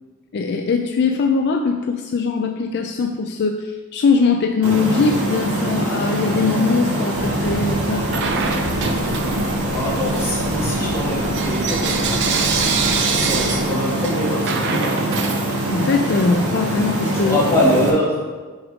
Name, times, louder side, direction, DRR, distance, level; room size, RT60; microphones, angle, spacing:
voice 1, 0.3-8.1 15.7-17.4, left 4 dB, 50° left, 4 dB, 0.4 m, -21 dB
sound 1, 4.6-17.9, right 1 dB, 90° right, 1.7 m, -23 dB
sound 2, 7.1-13.8, equal, 20° right, 1.4 m, -34 dB
Bell / Coin (dropping), 8.1-9.6 10.0-16.0, right 6 dB, 55° right, 0.7 m, -26 dB
voice 2, 9.7-12.3 13.0-15.0 17.2-18.4, left 1 dB, 15° left, -6 dB, 2.1 m, -23 dB
6.3 x 5.1 x 5.0 m, 1.4 s
head